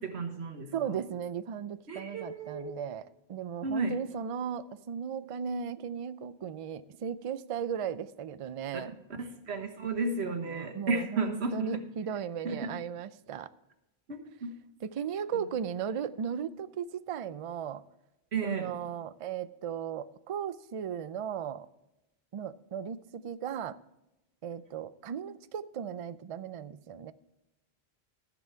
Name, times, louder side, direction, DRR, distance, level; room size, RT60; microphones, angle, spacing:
voice 1, 0.0-1.0 1.9-2.8 3.6-4.0 8.7-8.8 9.2-11.8 12.4-12.8 14.1-14.5 15.4-15.5 18.3-18.7, right 3 dB, 85° right, 4 dB, 1.6 m, -33 dB
voice 2, 0.7-8.9 10.2-13.5 14.8-17.8 18.4-21.7 22.3-23.8 24.4-27.1, right 7 dB, 50° right, 14 dB, 0.4 m, -36 dB
14.5 x 7.1 x 4.4 m, 0.96 s
omnidirectional pair, 1.1 m